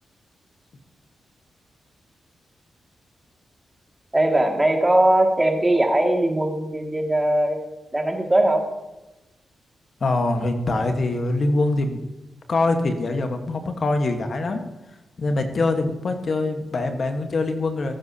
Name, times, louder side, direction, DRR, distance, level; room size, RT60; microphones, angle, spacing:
voice 1, 4.1-7.6 7.9-8.7, right 1 dB, 15° right, 2 dB, 2.2 m, -20 dB
voice 2, 10.0-12.0 12.5-14.6 15.2-17.9, left 2 dB, 55° left, 5 dB, 1.3 m, -23 dB
19.0 x 9.6 x 2.8 m, 1.0 s
cardioid pair, 60°, 0 cm